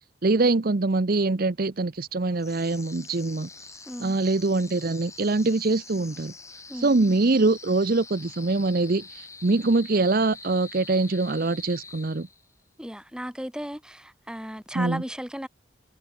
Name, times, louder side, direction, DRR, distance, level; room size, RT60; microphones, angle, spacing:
voice 1, 0.2-3.7 4.0-6.3 6.7-12.3 14.7-15.0, right 3 dB, 50° right, 0.7 m, -24 dB
sound 1, 2.4-12.6, left 4 dB, 15° left, 3.9 m, -45 dB
voice 2, 3.9-4.2 6.7-7.0 12.8-15.5, equal, 5° right, 7.2 m, -35 dB
head